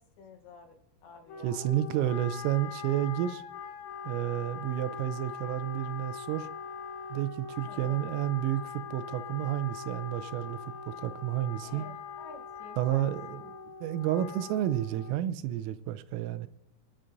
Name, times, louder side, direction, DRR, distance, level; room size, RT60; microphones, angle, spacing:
voice 1, 0.2-0.8 1.0-1.7 7.7-8.0 11.6-13.5, left 3 dB, 70° left, 2.5 m, -51 dB
Wind instrument woodwind instrument, 1.3-15.3, left 6 dB, 85° left, 3.8 m, -42 dB
voice 2, 1.4-3.4 4.0-6.5 7.1-11.9 12.8-16.5, right 12 dB, 90° right, 3.3 m, -31 dB
27.0 x 10.0 x 2.6 m
omnidirectional pair, 5.7 m